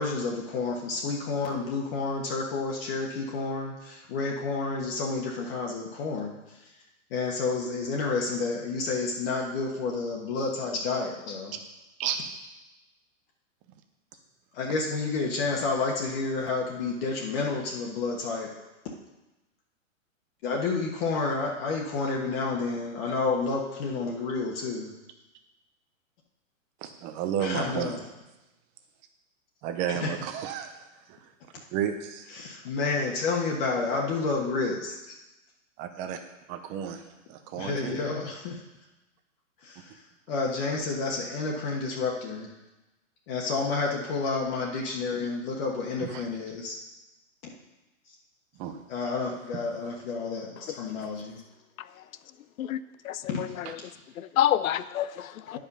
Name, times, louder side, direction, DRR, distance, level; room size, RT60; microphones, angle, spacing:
voice 1, 0.0-6.4 7.1-11.6 14.5-18.5 20.4-24.9 27.4-28.0 30.0-30.1 32.3-35.0 37.6-38.6 39.6-39.9 40.3-42.5 43.3-46.8 48.9-51.4 53.3-53.4 55.5-55.6, left 4 dB, 45° left, -2 dB, 1.4 m, -30 dB
voice 2, 26.8-28.0 29.6-30.7 31.1-31.2 31.7-32.2 35.8-36.2 36.5-38.0 46.0-46.2 48.6-48.8 49.5-49.6 53.7-53.8, right 9 dB, 20° right, 6 dB, 0.4 m, -32 dB
voice 3, 52.6-53.5 54.2-55.6, left 11 dB, 85° left, 16 dB, 0.6 m, -28 dB
9.6 x 5.2 x 5.4 m, 1.0 s
hypercardioid pair, 145°, 40 cm